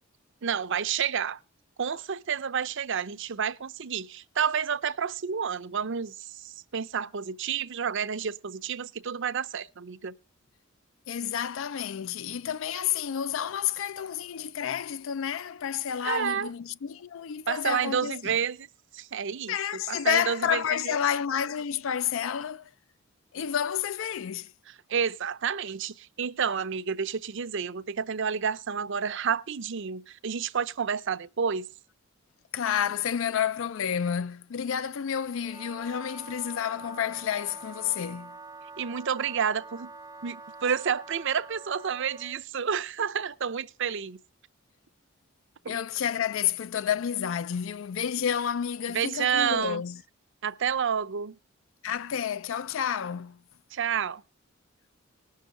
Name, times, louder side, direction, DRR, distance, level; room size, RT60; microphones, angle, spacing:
voice 1, 0.4-1.4 1.8-10.1 16.0-16.5 17.5-18.7 18.9-19.5 19.9-21.0 24.9-31.7 38.8-39.9 40.2-44.2 45.6-45.8 48.9-49.8 50.4-51.4 53.7-54.2, right 7 dB, 60° right, 0.6 m, -30 dB
voice 2, 11.1-18.3 19.5-22.7 23.3-24.5 32.5-38.4 45.7-50.0 51.8-53.4, left 8 dB, 65° left, 0.4 m, -30 dB
Wind instrument woodwind instrument, 35.4-42.4, right 3 dB, 15° right, 0.5 m, -46 dB
19.5 x 6.5 x 3.7 m
head